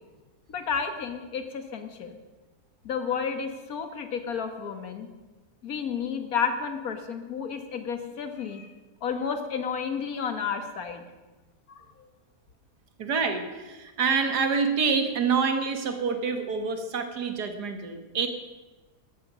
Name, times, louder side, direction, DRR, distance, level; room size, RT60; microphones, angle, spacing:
voice 1, 0.5-2.2 2.9-5.1 5.6-8.7 9.0-11.0 11.7-12.1, left 6 dB, 60° left, 7 dB, 1.9 m, -31 dB
voice 2, 13.0-18.3, right 5 dB, 75° right, 6 dB, 2.1 m, -27 dB
14.0 x 13.5 x 6.2 m, 1.2 s
omnidirectional pair, 1.7 m